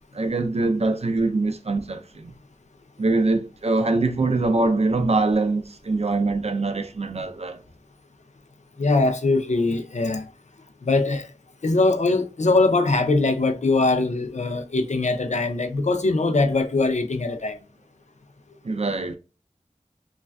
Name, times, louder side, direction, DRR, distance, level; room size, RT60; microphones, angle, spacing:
voice 1, 0.1-2.3 3.0-7.6 18.6-19.2, right 3 dB, 55° right, 0.4 m, -23 dB
voice 2, 8.8-10.3 10.8-11.3 11.6-17.6, left 3 dB, 70° left, 0.5 m, -22 dB
3.2 x 2.4 x 2.2 m
wide cardioid pair, 45°, 13 cm